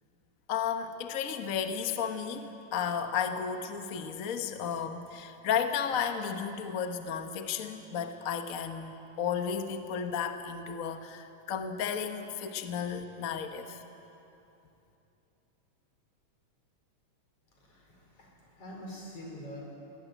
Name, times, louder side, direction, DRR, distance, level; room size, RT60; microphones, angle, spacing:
voice 1, 0.5-13.8, left 7 dB, 70° left, 6 dB, 0.8 m, -33 dB
voice 2, 17.6-19.6, equal, 50° left, -1 dB, 5.7 m, -45 dB
21.0 x 18.5 x 9.2 m, 2.9 s
omnidirectional pair, 3.3 m